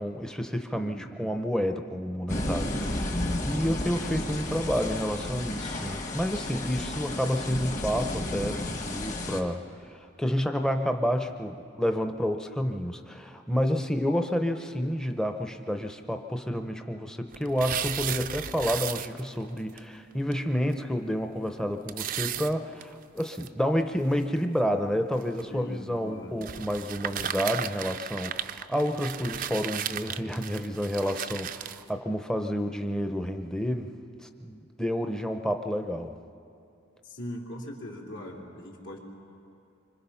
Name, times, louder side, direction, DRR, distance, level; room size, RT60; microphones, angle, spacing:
voice 1, 0.0-33.9 34.2-36.1, equal, 5° left, 6 dB, 0.7 m, -30 dB
voice 2, 0.7-1.2 6.9-7.2 25.5-26.4 37.0-39.0, left 1 dB, 75° left, -2 dB, 3.4 m, -41 dB
sound 1, 2.3-9.4, left 1 dB, 35° left, 1.4 m, -32 dB
sound 2, 17.3-19.5 19.8-19.9 20.3-20.4 20.7-20.8 21.9-23.5 24.1-24.2 25.2-25.4 26.4-31.8, right 9 dB, 45° right, 0.5 m, -35 dB
25.0 x 25.0 x 5.7 m, 2.7 s
head